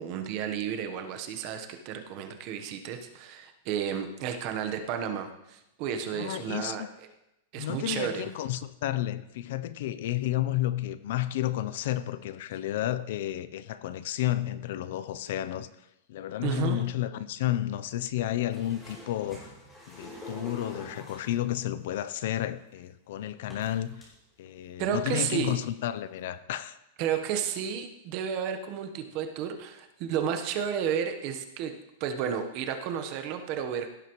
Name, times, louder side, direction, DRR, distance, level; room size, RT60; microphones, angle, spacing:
voice 1, 0.0-6.9 7.5-8.3 16.4-16.8 24.8-25.6 27.0-31.7 32.0-33.9, right 8 dB, 35° right, 1.1 m, -32 dB
voice 2, 6.1-6.9 7.6-15.7 16.1-19.5 19.9-24.1 24.4-26.8, left 13 dB, 60° left, 0.5 m, -31 dB
sound 1, 18.5-21.5 22.5-22.6 23.5-24.1 24.6-24.7 25.1-25.5 26.2-26.3, equal, 10° left, 3.4 m, -45 dB
17.0 x 8.2 x 3.1 m
supercardioid pair, 165°, 0 cm